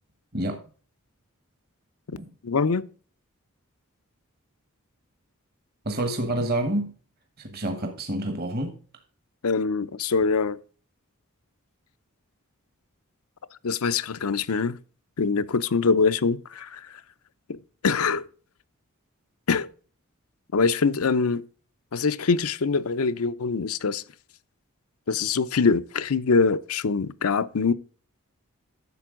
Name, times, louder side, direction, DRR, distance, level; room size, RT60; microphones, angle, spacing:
voice 1, 2.4-2.8 9.4-10.6 13.6-14.8 15.2-17.0 17.5-18.3 19.5-19.7 20.5-21.4 21.9-24.0 25.1-27.7, left 4 dB, 80° left, 0.6 m, -24 dB
voice 2, 5.8-6.9 7.4-8.8, right 1 dB, 45° right, 1.2 m, -28 dB
11.0 x 7.0 x 3.7 m
head